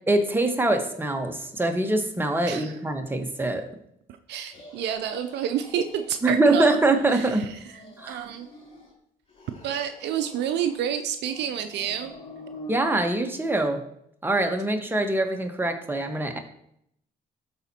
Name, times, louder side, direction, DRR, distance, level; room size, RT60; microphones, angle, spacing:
voice 1, 0.1-3.6 6.2-7.5 8.0-8.3 12.7-13.8 14.2-16.4, right 2 dB, 10° right, 4 dB, 1.2 m, -24 dB
voice 2, 2.4-2.8 4.3-6.8 7.1-7.5 8.1-8.5 9.6-12.1, right 9 dB, 70° right, 8 dB, 0.5 m, -29 dB
sound 1, 4.5-6.1 6.4-7.3 7.6-8.9 9.3-10.9 11.2-12.8, left 1 dB, 35° left, 3.0 m, -46 dB
12.0 x 4.2 x 2.8 m, 0.73 s
supercardioid pair, 55°, 18 cm